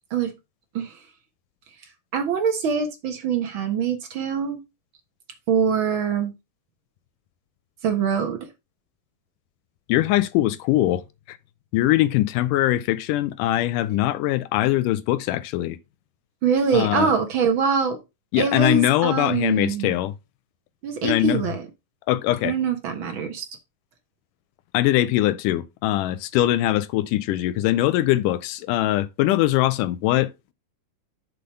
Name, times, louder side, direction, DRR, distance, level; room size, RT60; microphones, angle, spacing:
voice 1, 2.1-4.6 5.5-6.3 7.8-8.4 16.4-18.0 18.4-19.9 20.8-21.6 22.4-23.4, right 6 dB, 55° right, 1.5 m, -23 dB
voice 2, 9.9-11.4 11.7-15.8 16.7-17.1 18.3-20.1 21.0-21.4 22.1-22.6 24.7-30.5, left 15 dB, 80° left, 2.0 m, -22 dB
6.9 x 4.0 x 5.5 m
omnidirectional pair, 3.9 m